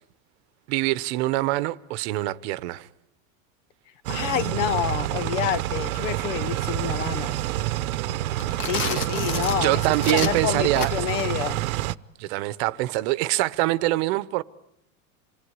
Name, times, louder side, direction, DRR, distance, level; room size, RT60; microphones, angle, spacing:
voice 1, 0.7-2.9 8.7-9.1 9.6-10.9 12.2-14.4, right 18 dB, 50° right, 1.0 m, -24 dB
sound 1, 4.0-11.9, right 15 dB, 85° right, 1.0 m, -28 dB
voice 2, 4.1-7.4 8.6-9.8 10.1-11.6, left 11 dB, 60° left, 1.0 m, -28 dB
sound 2, 8.3-11.2, left 6 dB, 30° left, 1.7 m, -32 dB
27.5 x 20.0 x 9.7 m
supercardioid pair, 160°, 41 cm